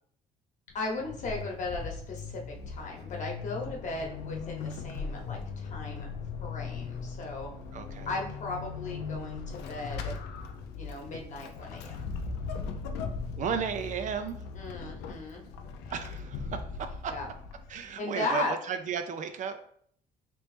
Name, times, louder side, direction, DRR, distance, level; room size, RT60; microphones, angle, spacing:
Vehicle / Accelerating revving vroom / Squeak, 0.7-17.9, left 5 dB, 85° left, 0.5 m, -39 dB
voice 1, 0.7-6.1 6.4-7.5 8.1-10.1 10.7-12.1 14.5-15.4 17.1-17.3 18.0-18.5, left 2 dB, 45° left, 0 dB, 1.0 m, -36 dB
voice 2, 7.7-8.1 13.3-14.4 15.9-17.2 17.7-19.6, right 7 dB, 50° right, 8 dB, 0.4 m, -34 dB
3.0 x 3.0 x 3.3 m, 0.62 s
cardioid pair, 110°, 17 cm